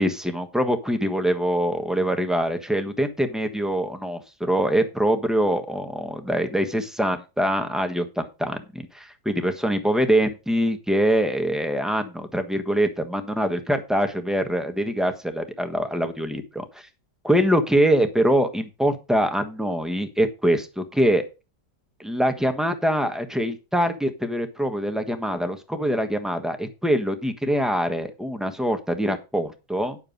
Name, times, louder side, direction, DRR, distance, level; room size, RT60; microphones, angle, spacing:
voice 1, 0.0-16.6 17.2-21.2 22.0-30.0, equal, ahead, 7 dB, 1.1 m, -24 dB
9.8 x 6.8 x 5.4 m, 0.29 s
omnidirectional pair, 1.7 m